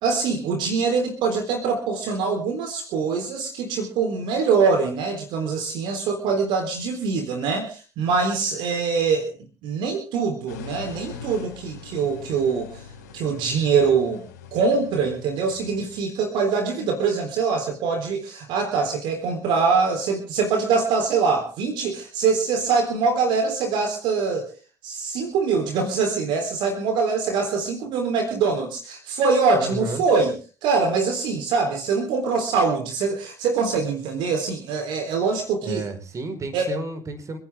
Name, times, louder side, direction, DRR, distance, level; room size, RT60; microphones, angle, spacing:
voice 1, 0.0-9.3 9.6-12.8 13.1-14.2 14.5-24.5 24.8-30.3 30.6-35.9 36.5-36.7, right 5 dB, 65° right, 5 dB, 3.7 m, -23 dB
sound 1, 10.5-16.0, left 6 dB, 90° left, 5.0 m, -42 dB
voice 2, 29.5-30.1 35.6-37.4, right 2 dB, 35° right, 8 dB, 4.8 m, -31 dB
30.0 x 10.5 x 3.7 m, 0.36 s
hypercardioid pair, 60°, 9 cm